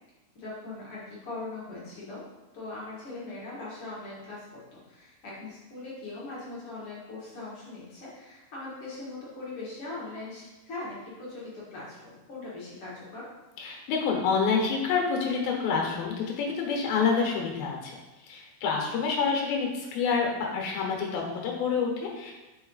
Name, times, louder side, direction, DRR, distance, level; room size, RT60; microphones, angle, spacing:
voice 1, 0.4-2.2 2.5-4.4 4.7-13.3, left 2 dB, 50° left, -7 dB, 1.9 m, -40 dB
voice 2, 13.6-18.0 18.2-22.3, left 5 dB, 80° left, 0 dB, 2.9 m, -28 dB
5.5 x 5.4 x 4.0 m, 1.1 s
omnidirectional pair, 4.2 m